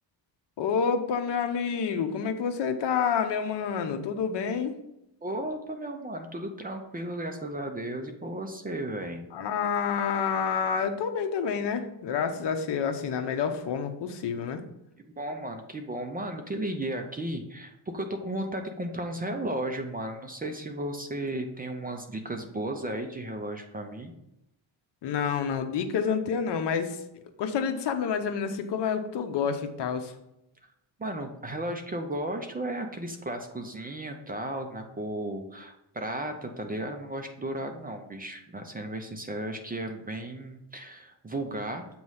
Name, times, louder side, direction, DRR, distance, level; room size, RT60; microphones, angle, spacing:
voice 1, 0.6-4.7 9.3-14.6 25.0-27.0 27.4-30.1, left 6 dB, 65° left, 7 dB, 0.9 m, -28 dB
voice 2, 5.2-9.2 15.0-24.1 30.6-30.7 31.0-41.9, right 1 dB, 20° right, 5 dB, 0.6 m, -34 dB
7.8 x 3.1 x 5.6 m, 0.84 s
cardioid pair, 135°, 46 cm